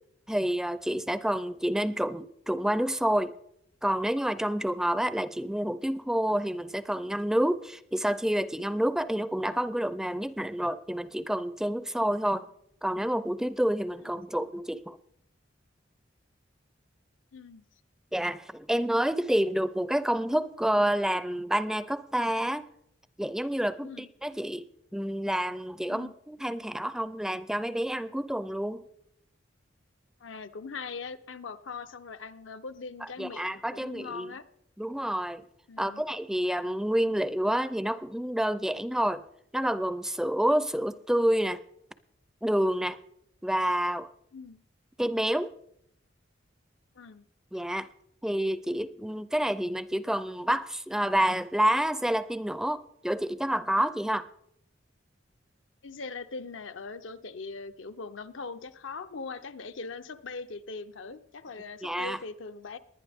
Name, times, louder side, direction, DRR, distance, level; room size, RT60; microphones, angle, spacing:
voice 1, 0.3-3.3 3.8-12.5 12.8-15.0 18.1-22.7 23.2-24.6 24.9-28.8 33.0-34.3 34.8-35.4 35.8-39.2 39.5-41.6 42.4-43.0 43.4-44.1 45.0-45.5 47.5-47.9 48.2-54.2 61.8-62.2, right 1 dB, 5° right, 14 dB, 0.4 m, -28 dB
voice 2, 17.3-17.6 23.8-24.1 25.9-26.1 30.2-34.4 35.7-36.0 44.3-44.6 47.0-47.2 54.1-54.2 55.8-62.8, left 4 dB, 85° left, 9 dB, 0.7 m, -41 dB
19.5 x 11.0 x 3.5 m, 0.75 s
head